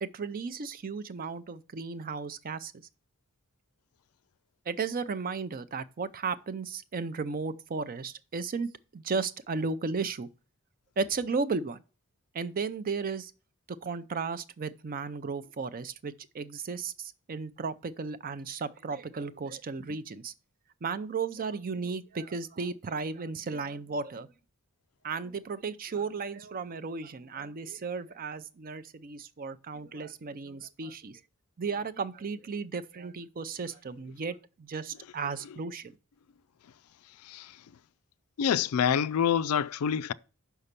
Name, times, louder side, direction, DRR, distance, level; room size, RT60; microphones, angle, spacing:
voice 1, 0.0-2.7 4.7-10.3 11.0-11.8 12.3-13.3 13.7-20.3 20.8-24.3 25.0-31.2 31.6-36.0, right 4 dB, 40° right, 0.5 m, -35 dB
voice 2, 38.4-40.1, left 8 dB, 80° left, 0.4 m, -26 dB
5.9 x 5.6 x 6.6 m
head